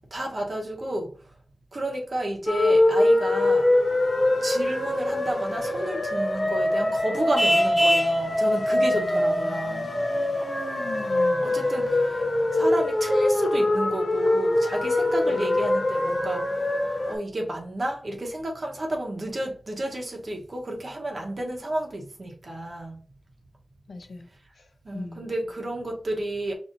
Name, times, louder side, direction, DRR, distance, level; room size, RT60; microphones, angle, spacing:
voice 1, 0.1-1.3 1.7-3.7 4.4-9.9 11.4-23.0 24.8-26.5, right 1 dB, 45° right, 0.9 m, -31 dB
sound 1, 2.5-17.2, left 1 dB, 40° left, 1.1 m, -23 dB
Vehicle horn car horn honking, 7.4-8.2, equal, 15° right, 0.5 m, -23 dB
voice 2, 8.9-11.4 11.8-11.9 15.3-15.6 23.9-24.3 24.9-25.4, left 3 dB, 65° left, 0.6 m, -40 dB
5.3 x 3.1 x 2.5 m
wide cardioid pair, 105°, 0 cm